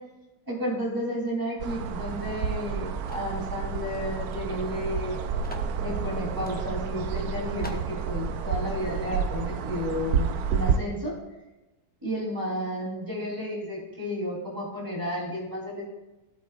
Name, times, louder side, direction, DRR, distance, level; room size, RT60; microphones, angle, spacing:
voice 1, 0.5-5.3 5.8-11.2 12.0-15.8, equal, 15° right, -3 dB, 3.1 m, -32 dB
sound 1, 1.6-10.8, right 6 dB, 85° right, 1.1 m, -30 dB
sound 2, 3.1-3.4 4.3-4.4 4.7-4.8 5.4-5.7 6.4-6.6 7.1-7.2 7.6-7.9, equal, 10° left, 0.8 m, -42 dB
16.0 x 8.2 x 2.4 m, 1.1 s
omnidirectional pair, 1.6 m